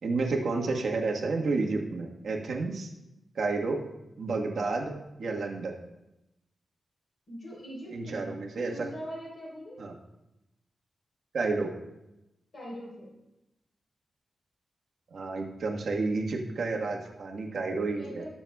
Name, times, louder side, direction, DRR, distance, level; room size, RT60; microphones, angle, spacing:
voice 1, 0.0-2.9 3.3-3.8 4.2-4.9 5.2-5.7 7.9-8.7 9.8-9.9 11.3-11.7 15.1-18.2, right 3 dB, 65° right, 0 dB, 1.4 m, -30 dB
voice 2, 7.3-9.8 12.5-13.1 18.0-18.3, equal, 50° left, -6 dB, 3.9 m, -42 dB
20.0 x 7.0 x 2.3 m, 0.94 s
wide cardioid pair, 165°, 0 cm